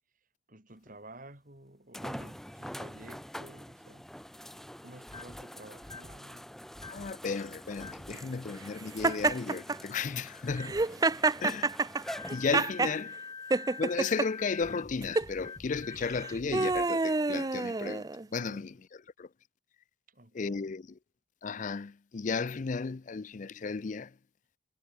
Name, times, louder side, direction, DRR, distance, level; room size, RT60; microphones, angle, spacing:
voice 1, 0.5-4.0 4.8-6.5 10.6-11.4 18.4-18.7 20.1-20.7, right 1 dB, 45° right, 4.8 m, -52 dB
sound 1, 0.9-1.0 1.9-13.0 13.7-13.8 17.2-17.3, equal, ahead, 0.9 m, -45 dB
sound 2, 5.1-5.4 5.8-6.2 6.7-7.1 7.8-8.1 9.0-9.3 10.5-10.8 12.1-16.8, left 4 dB, 25° left, 1.4 m, -45 dB
voice 2, 6.9-10.7 11.4-11.7 12.3-13.1 13.8-18.8 19.2-19.3 20.3-20.9 21.4-24.1, left 5 dB, 40° left, 0.4 m, -34 dB
Laughter, 9.0-9.8 10.6-13.0 13.5-14.3 15.0-15.3 16.0-18.3, right 3 dB, 20° right, 0.4 m, -28 dB
head